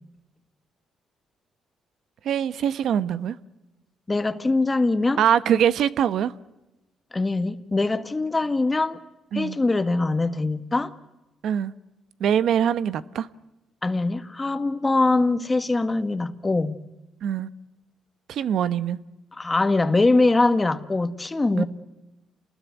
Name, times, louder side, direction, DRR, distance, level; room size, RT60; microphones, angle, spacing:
voice 1, 2.2-3.3 5.2-6.3 9.3-9.6 11.4-11.7 12.2-13.3 17.2-17.5 18.3-19.0 21.6-21.7, right 9 dB, 70° right, 1.0 m, -23 dB
voice 2, 4.1-5.2 7.1-9.0 9.3-10.9 13.8-16.8 19.3-21.6, left 2 dB, 20° left, 1.7 m, -22 dB
28.5 x 20.5 x 9.4 m
cardioid pair, 90°, 0 cm